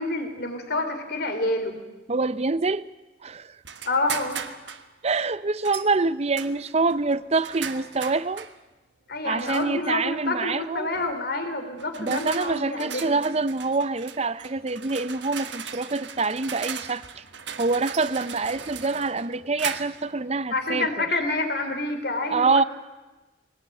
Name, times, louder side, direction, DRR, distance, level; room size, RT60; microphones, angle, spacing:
voice 1, 0.0-1.8 3.9-4.4 9.1-13.2 20.5-22.6, left 2 dB, 55° left, 3.7 m, -28 dB
voice 2, 2.1-2.9 3.2-3.6 5.0-8.5 9.2-10.9 12.0-17.2 17.6-21.1 22.3-22.6, right 3 dB, 35° right, 0.7 m, -26 dB
sound 1, 3.6-4.9 5.6-5.9 6.3-8.6 9.4-9.9 10.9-11.2 11.8-20.1, right 7 dB, 70° right, 1.4 m, -38 dB
22.0 x 18.0 x 9.2 m
head